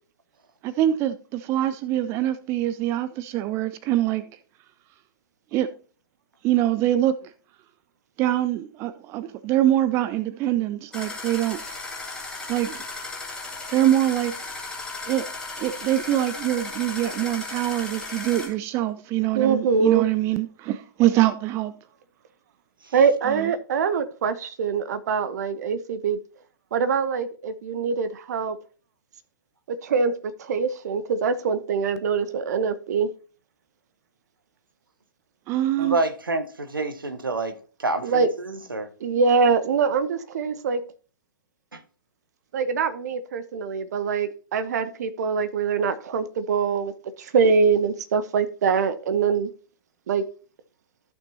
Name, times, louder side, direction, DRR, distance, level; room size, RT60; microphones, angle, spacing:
voice 1, 0.6-4.3 5.5-5.7 6.4-7.3 8.2-11.6 12.5-12.8 13.7-14.3 15.1-15.3 15.6-21.7 23.3-23.5 35.5-36.0, right 13 dB, 25° right, 0.5 m, -24 dB
sound 1, 10.9-18.5, left 3 dB, 5° left, 2.7 m, -35 dB
voice 2, 19.3-20.1 22.9-26.2 26.7-28.6 29.7-33.1 38.0-38.3 39.0-40.8 42.5-46.9 47.2-49.5 50.1-50.2, right 5 dB, 50° right, 1.0 m, -23 dB
voice 3, 35.8-36.4 36.7-38.9 41.7-41.8, right 2 dB, 75° right, 1.4 m, -28 dB
14.5 x 6.0 x 2.8 m
figure-of-eight pair, 115°, 12 cm